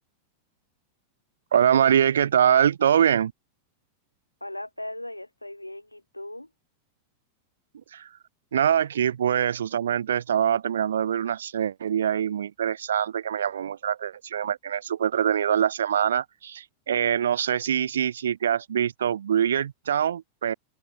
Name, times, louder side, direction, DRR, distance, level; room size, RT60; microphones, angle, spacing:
voice 1, 1.5-3.3 7.9-8.1 8.5-20.5, right 9 dB, 65° right, 0.4 m, -24 dB
voice 2, 4.4-6.5, left 1 dB, 85° left, 1.9 m, -38 dB
figure-of-eight pair, 90°, 0 cm